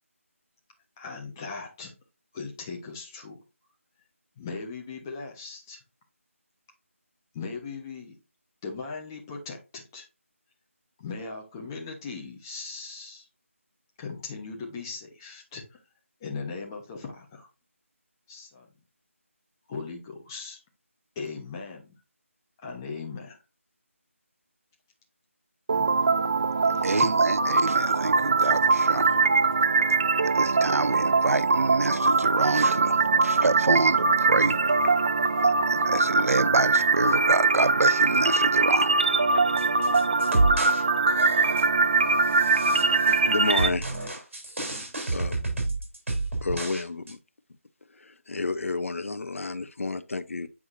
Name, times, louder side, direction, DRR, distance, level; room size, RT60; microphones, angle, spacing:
voice 1, 1.0-1.9 2.3-3.4 4.4-5.8 7.3-8.2 8.6-10.1 11.0-13.3 14.0-15.8 16.2-17.5 18.3-18.7 19.7-20.6 21.1-21.9 22.6-23.4 25.7-26.0 26.7-27.1, left 4 dB, 15° left, 1.0 m, -38 dB
sound 1, 25.7-43.7, right 4 dB, 30° right, 0.4 m, -22 dB
voice 2, 26.8-29.3 30.3-34.6 34.8-34.9 35.4-39.0, right 3 dB, 85° right, 0.5 m, -27 dB
sound 2, 39.6-40.8 41.1-41.8 42.3-43.2 43.6-46.8 47.1-47.2, right 2 dB, 55° right, 3.4 m, -29 dB
voice 3, 43.2-44.2 45.1-45.4 46.4-47.2 48.0-50.5, left 3 dB, 65° left, 0.7 m, -31 dB
8.0 x 4.8 x 2.6 m
figure-of-eight pair, 170°, 8 cm